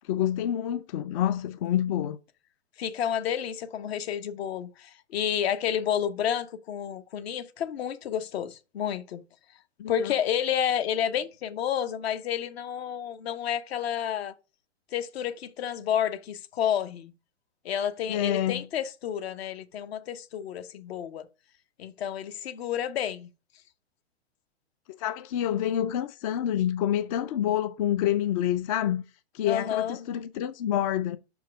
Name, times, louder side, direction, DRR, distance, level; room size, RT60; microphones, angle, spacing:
voice 1, 0.1-2.2 9.8-10.1 18.1-18.7 25.0-29.0 29.3-31.2, left 11 dB, 30° left, 0.4 m, -27 dB
voice 2, 2.8-9.2 9.9-14.3 14.9-17.1 17.6-21.3 21.8-23.3 29.4-30.0, left 9 dB, 60° left, 1.1 m, -30 dB
5.9 x 4.6 x 6.2 m
hypercardioid pair, 135°, 35 cm